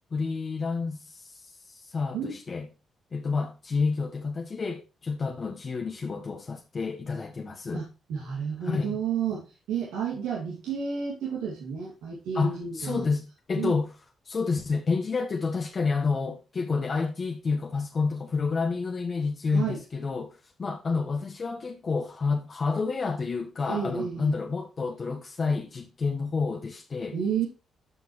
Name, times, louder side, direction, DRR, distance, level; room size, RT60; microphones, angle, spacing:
voice 1, 0.1-2.7 3.1-7.8 8.6-8.9 12.3-13.9 14.2-27.2, left 4 dB, 50° left, 1.2 m, -29 dB
voice 2, 7.7-13.0 13.5-13.8 19.5-19.8 23.7-24.3 27.1-27.5, right 7 dB, 85° right, 2.3 m, -31 dB
12.0 x 5.4 x 3.1 m
supercardioid pair, 55°, 0 cm